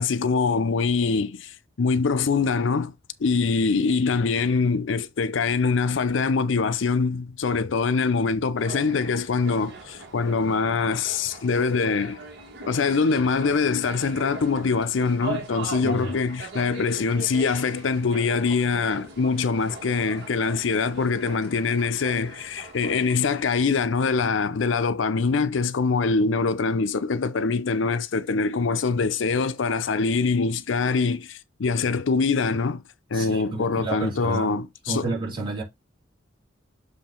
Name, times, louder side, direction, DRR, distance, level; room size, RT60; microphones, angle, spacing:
voice 1, 0.0-2.9 3.2-12.2 12.7-32.8 33.1-35.1, left 4 dB, 70° left, 0.5 m, -24 dB
sound 1, 8.6-23.5, right 3 dB, 60° right, 2.3 m, -40 dB
voice 2, 15.8-16.1 33.1-34.6 34.9-35.6, right 3 dB, 25° right, 3.9 m, -31 dB
7.5 x 3.3 x 4.3 m
head